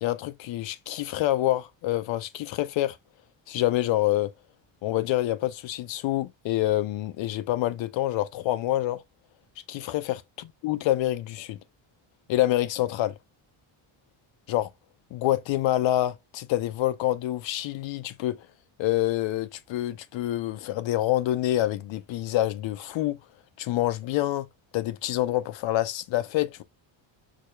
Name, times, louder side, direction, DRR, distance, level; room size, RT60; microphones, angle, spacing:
voice 1, 0.0-3.0 3.5-4.3 4.8-9.0 9.7-10.2 10.6-11.6 12.3-13.1 14.5-14.7 15.1-18.4 18.8-23.2 23.6-24.5 24.7-26.6, left 14 dB, 65° left, 0.7 m, -27 dB
4.9 x 2.3 x 4.4 m
cardioid pair, 175°, 49 cm